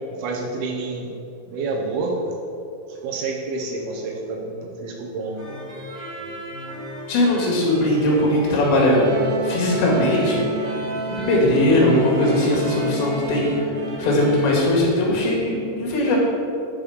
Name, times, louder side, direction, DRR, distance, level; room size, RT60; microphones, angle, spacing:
voice 1, 0.1-1.1 1.5-2.4 2.9-5.4, right 3 dB, 75° right, 0 dB, 2.6 m, -28 dB
sound 1, 5.3-14.8, equal, 40° right, 1.8 m, -37 dB
voice 2, 7.1-9.1 9.4-10.4 11.1-13.5 14.0-16.2, left 1 dB, 80° left, -3 dB, 4.3 m, -19 dB
Wind instrument woodwind instrument, 9.1-14.6, right 3 dB, 90° right, 2.1 m, -31 dB
11.5 x 5.5 x 5.0 m, 2.7 s
omnidirectional pair, 5.0 m